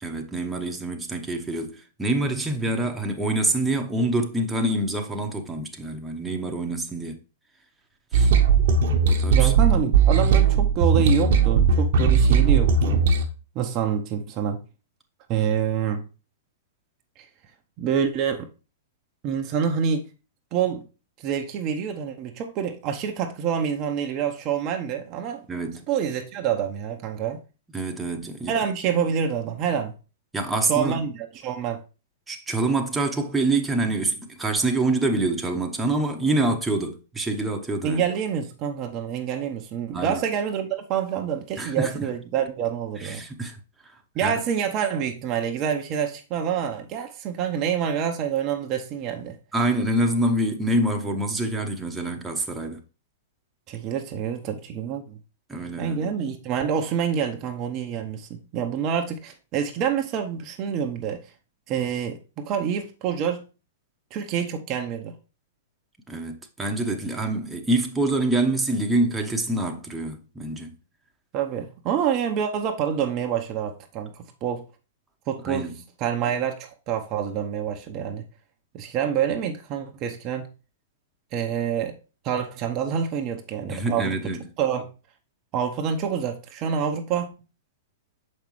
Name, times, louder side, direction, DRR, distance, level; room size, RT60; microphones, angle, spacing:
voice 1, 0.0-7.2 8.1-8.3 9.1-9.5 25.5-25.8 27.7-28.6 30.3-31.0 32.3-38.0 39.9-40.2 41.6-42.1 43.0-43.6 44.2-44.3 49.5-52.8 55.5-56.1 66.1-70.8 75.4-75.8 83.7-84.5, right 2 dB, 10° right, 1.0 m, -26 dB
sound 1, 8.1-13.2, right 5 dB, 60° right, 1.0 m, -18 dB
voice 2, 9.3-13.0 13.5-14.6 15.3-16.0 17.2-17.3 17.8-18.5 19.2-20.1 20.5-20.9 21.2-25.5 25.9-27.4 28.5-29.9 30.7-31.8 37.8-43.2 44.1-49.4 53.7-55.2 55.8-61.2 61.7-63.5 64.1-65.1 71.3-74.7 75.3-75.7 76.0-78.2 78.7-80.5 81.3-81.9 82.2-84.2 84.6-84.9 85.5-87.3, right 8 dB, 35° right, 0.8 m, -27 dB
6.4 x 5.3 x 3.1 m
hypercardioid pair, 115°, 0 cm